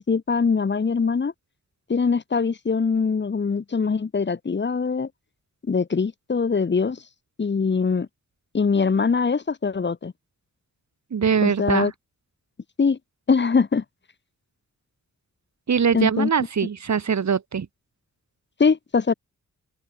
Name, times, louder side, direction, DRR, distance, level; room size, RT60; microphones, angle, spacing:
voice 1, 0.0-1.3 1.9-5.1 5.7-7.0 7.4-8.1 8.5-10.1 11.4-11.9 12.8-13.0 13.3-13.8 15.9-16.3 18.6-19.1, left 5 dB, 40° left, 1.6 m, -22 dB
voice 2, 11.1-11.9 15.7-17.7, right 6 dB, 70° right, 5.5 m, -22 dB
open air
wide cardioid pair, 175°, 29 cm